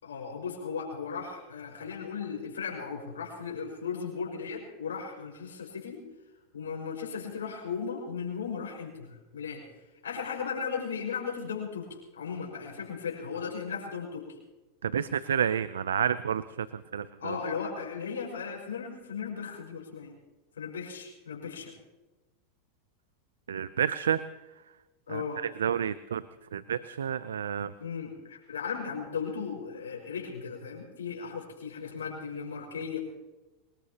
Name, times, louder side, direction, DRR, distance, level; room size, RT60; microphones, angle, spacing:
voice 1, 0.0-6.0 6.5-9.6 10.0-11.9 12.1-14.2 17.2-20.2 20.6-21.8 25.1-25.4 27.8-33.0, left 6 dB, 90° left, 0 dB, 5.6 m, -36 dB
voice 2, 14.8-17.4 23.5-24.2 25.1-26.2 26.5-27.7, right 8 dB, 85° right, 16 dB, 0.5 m, -30 dB
24.5 x 20.5 x 2.9 m, 1.1 s
hypercardioid pair, 100°, 0 cm